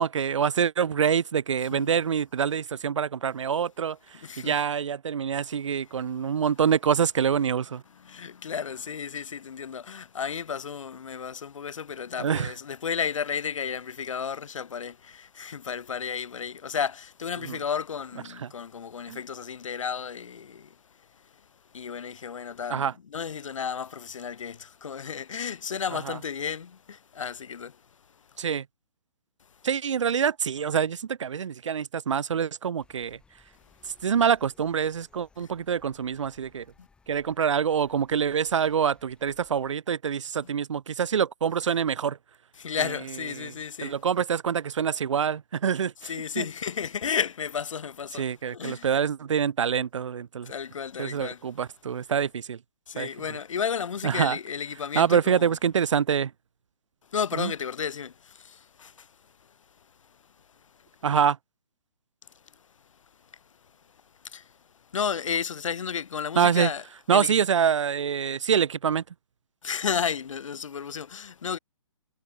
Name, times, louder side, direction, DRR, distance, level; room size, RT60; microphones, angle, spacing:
voice 1, 0.0-4.0 4.4-7.8 12.2-12.5 17.4-17.6 18.4-18.5 19.1-19.2 22.7-22.9 26.1-26.2 28.4-28.6 29.6-33.2 34.0-36.7 37.1-42.2 43.3-43.5 43.8-46.1 46.4-46.5 48.2-50.5 51.0-52.6 53.0-53.1 54.0-54.4 55.0-56.3 57.4-57.5 61.0-61.4 66.4-66.7 67.1-69.0, right 7 dB, 60° right, 1.8 m, -25 dB
voice 2, 4.1-4.6 7.9-20.8 21.7-27.8 35.4-35.5 36.8-36.9 40.4-40.5 42.6-44.0 46.0-48.9 50.5-51.4 52.9-55.5 57.1-59.1 64.2-64.5 64.9-66.8 67.1-67.3 69.6-71.6, left 7 dB, 65° left, 2.4 m, -33 dB
sound 1, 32.8-39.7, left 4 dB, 5° left, 6.9 m, -62 dB
hypercardioid pair, 160°, 17 cm